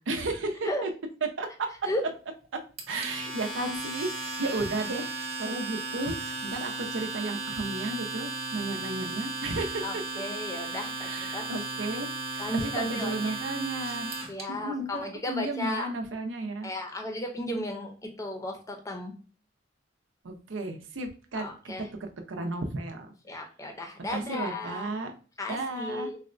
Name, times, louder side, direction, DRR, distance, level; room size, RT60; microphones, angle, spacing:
voice 1, 0.1-0.9 1.2-1.9 2.5-2.6 2.9-10.0 11.0-12.1 12.3-14.1 14.5-16.7 20.2-21.7 22.0-23.1 24.1-25.1 25.5-26.1, right 2 dB, 90° right, 4 dB, 0.6 m, -33 dB
Domestic sounds home sounds, 2.8-14.4, right 3 dB, 35° right, 0.8 m, -35 dB
voice 2, 9.8-11.5 12.4-13.3 14.3-15.9 16.6-19.1 21.3-21.8 23.3-24.9 25.4-26.2, left 1 dB, 15° left, 2 dB, 0.5 m, -34 dB
4.0 x 2.1 x 2.5 m, 0.38 s
head